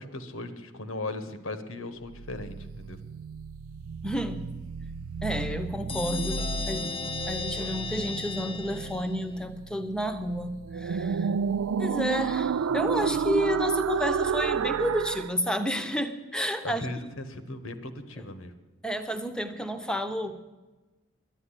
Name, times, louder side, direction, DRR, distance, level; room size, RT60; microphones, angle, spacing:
voice 1, 0.0-3.0 16.6-18.5, left 2 dB, 80° left, 11 dB, 1.3 m, -37 dB
sound 1, 2.1-15.3, right 6 dB, 85° right, 0.4 m, -31 dB
voice 2, 4.0-4.5 5.2-7.0 7.3-11.3 11.8-16.9 18.8-20.4, equal, 5° left, 9 dB, 0.8 m, -31 dB
sound 2, 5.9-9.4, left 4 dB, 25° left, 0.6 m, -35 dB
11.0 x 11.0 x 9.9 m, 1.2 s
head